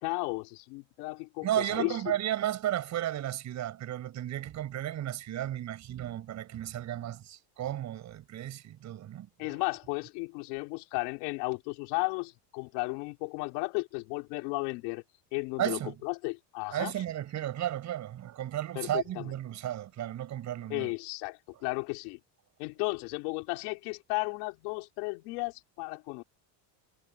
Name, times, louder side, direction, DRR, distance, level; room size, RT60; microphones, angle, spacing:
voice 1, 0.0-2.0 9.4-15.0 15.3-16.9 18.8-19.3 20.7-22.2 22.6-26.2, left 28 dB, 80° left, 3.6 m, -34 dB
voice 2, 1.4-9.6 15.6-16.0 16.7-20.9, right 12 dB, 35° right, 7.4 m, -34 dB
cardioid pair, 170°, 48 cm